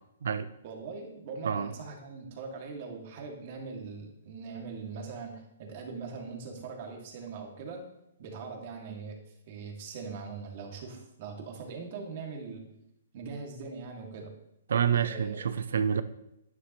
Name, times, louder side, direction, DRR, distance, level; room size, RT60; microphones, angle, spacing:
voice 1, 0.6-7.8 8.2-9.2 9.5-12.7 13.1-14.3 15.0-15.5, right 4 dB, 45° right, 2.3 m, -41 dB
voice 2, 14.7-16.0, right 7 dB, 75° right, 0.7 m, -28 dB
10.5 x 9.6 x 3.1 m
hypercardioid pair, 155°, 0 cm